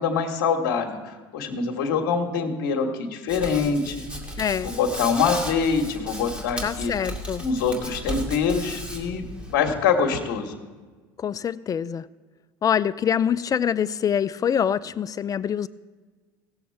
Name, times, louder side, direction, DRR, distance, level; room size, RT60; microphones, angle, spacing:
voice 1, 0.0-4.0 4.6-6.9 7.4-10.5, left 5 dB, 80° left, 3 dB, 1.5 m, -24 dB
Hands, 3.3-9.5, equal, 10° right, 2.4 m, -35 dB
voice 2, 4.4-4.7 6.6-7.4 11.2-12.1 12.6-15.7, left 8 dB, 30° left, 17 dB, 0.4 m, -25 dB
17.0 x 7.2 x 4.6 m, 1.4 s
supercardioid pair, 85°, 11 cm